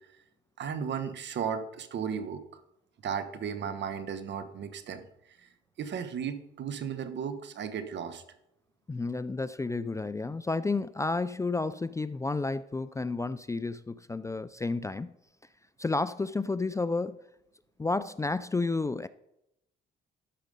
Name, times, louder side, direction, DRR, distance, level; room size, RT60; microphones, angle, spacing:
voice 1, 0.6-2.4 3.0-5.1 5.4-5.5 5.8-8.2, right 7 dB, 65° right, 10 dB, 1.2 m, -35 dB
voice 2, 8.9-15.1 15.8-17.2 17.8-19.1, left 3 dB, 15° left, 15 dB, 0.4 m, -31 dB
13.0 x 5.1 x 5.4 m, 0.80 s
cardioid pair, 90°, 20 cm